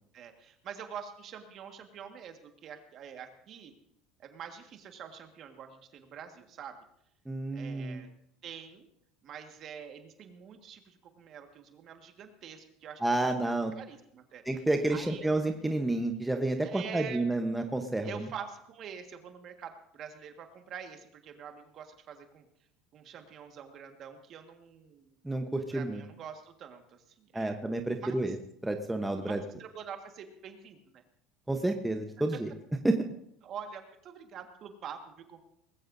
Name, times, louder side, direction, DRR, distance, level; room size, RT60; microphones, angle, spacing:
voice 1, 0.1-3.7 4.2-6.8 7.5-8.1 8.4-8.9 9.2-13.3 13.7-14.6 14.9-15.3 16.6-17.3 18.0-22.5 22.9-25.1 25.7-27.6 28.0-28.4 29.2-31.0 32.3-32.4 33.4-35.4, right 7 dB, 45° right, 5 dB, 1.6 m, -45 dB
voice 2, 7.3-8.0 13.0-13.7 14.5-18.2 25.2-26.0 27.3-28.4 28.6-29.4 31.5-32.5 32.8-33.0, right 2 dB, 5° right, 4 dB, 1.0 m, -30 dB
20.0 x 15.5 x 2.7 m, 0.73 s
supercardioid pair, 125°, 0 cm